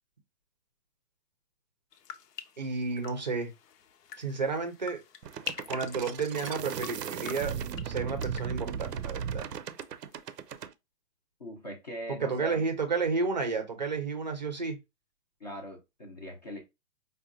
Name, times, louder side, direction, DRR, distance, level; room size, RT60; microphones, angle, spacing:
sound 1, 1.9-9.9 10.1-10.7, left 8 dB, 75° left, 0.7 m, -46 dB
voice 1, 2.6-3.5 4.2-5.0 5.7-7.6 7.8-9.5 12.2-14.8, right 4 dB, 30° right, 0.5 m, -31 dB
sound 2, 5.2-10.7, right 8 dB, 85° right, 0.6 m, -36 dB
voice 2, 11.4-12.6 15.4-16.6, equal, 30° left, 0.5 m, -40 dB
5.0 x 2.2 x 2.5 m
hypercardioid pair, 160°, 48 cm